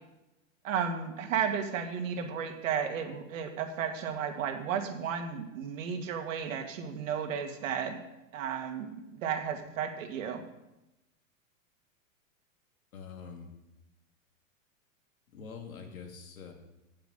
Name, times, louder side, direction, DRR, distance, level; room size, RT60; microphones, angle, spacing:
voice 1, 0.6-8.0 8.3-10.4, right 7 dB, 70° right, 4 dB, 2.1 m, -33 dB
voice 2, 12.9-13.5 15.3-16.5, left 6 dB, 90° left, 3 dB, 2.5 m, -45 dB
9.1 x 6.8 x 7.9 m, 0.94 s
hypercardioid pair, 120°, 41 cm